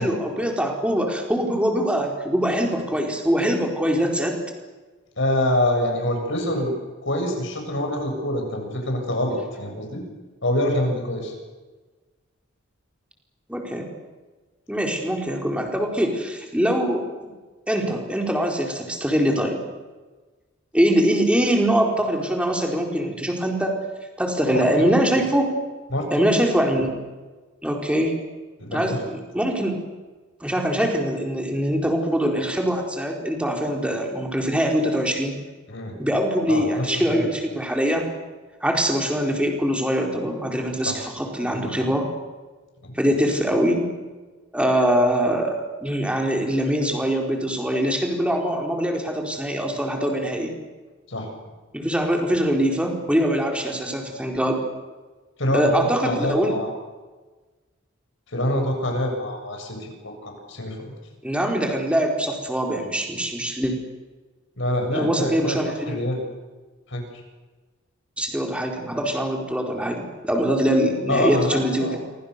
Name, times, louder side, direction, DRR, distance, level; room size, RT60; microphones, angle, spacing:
voice 1, 0.0-4.4 13.5-13.9 14.7-17.3 17.7-19.6 20.7-23.8 24.2-25.6 26.1-27.0 27.6-28.2 28.7-29.8 30.4-35.4 36.0-38.1 38.6-42.1 42.9-43.8 44.5-50.5 51.7-54.6 55.5-56.6 61.2-63.7 64.9-66.0 68.2-72.0, equal, 5° right, 2 dB, 4.4 m, -23 dB
voice 2, 5.2-6.7 7.0-10.0 10.4-11.3 24.5-24.6 25.9-26.3 28.6-29.0 35.7-35.9 36.5-37.3 40.8-41.0 41.5-41.7 42.8-42.9 51.1-51.3 55.4-56.7 58.3-60.9 64.6-65.6 65.9-66.2 66.9-67.0 71.1-72.0, left 1 dB, 65° left, 3 dB, 7.6 m, -25 dB
28.5 x 24.5 x 6.9 m, 1.3 s
head